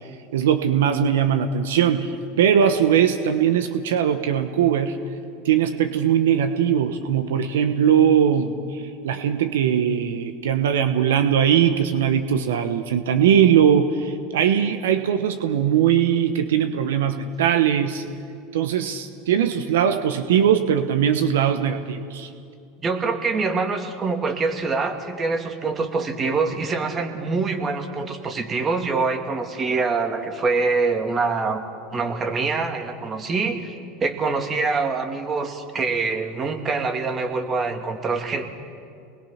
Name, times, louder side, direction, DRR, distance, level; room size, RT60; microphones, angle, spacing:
voice 1, 0.3-5.0 5.4-18.0 18.5-22.3, right 8 dB, 85° right, 9 dB, 1.1 m, -20 dB
voice 2, 22.8-31.6 31.9-38.4, right 4 dB, 30° right, 5 dB, 2.6 m, -25 dB
28.5 x 20.5 x 5.9 m, 2.4 s
hypercardioid pair, 95°, 0 cm